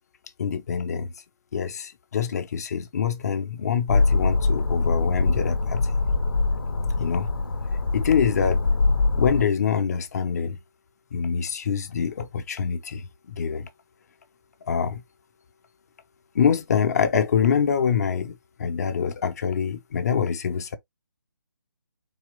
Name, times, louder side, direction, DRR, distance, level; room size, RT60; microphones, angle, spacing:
voice 1, 0.4-1.1 1.5-5.8 7.0-7.3 7.9-8.6 9.2-10.6 11.1-13.7 14.7-15.0 16.3-20.8, left 7 dB, 45° left, 0.8 m, -25 dB
sound 1, 3.9-9.4, left 3 dB, 75° left, 0.8 m, -23 dB
4.1 x 3.0 x 3.3 m
figure-of-eight pair, 155°, 12 cm